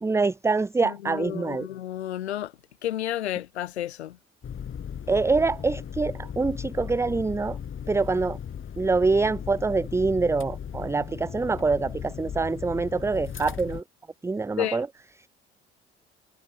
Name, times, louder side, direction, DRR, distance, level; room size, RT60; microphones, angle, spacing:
voice 1, 0.0-1.7 5.1-7.6 7.9-8.4 8.8-13.8 14.2-14.9, right 3 dB, 10° right, 0.5 m, -25 dB
voice 2, 0.8-2.5 2.8-4.2 14.6-14.8, left 12 dB, 85° left, 0.8 m, -31 dB
sound 1, 4.4-13.8, left 8 dB, 40° left, 2.3 m, -37 dB
figure-of-eight pair, 50°, 32 cm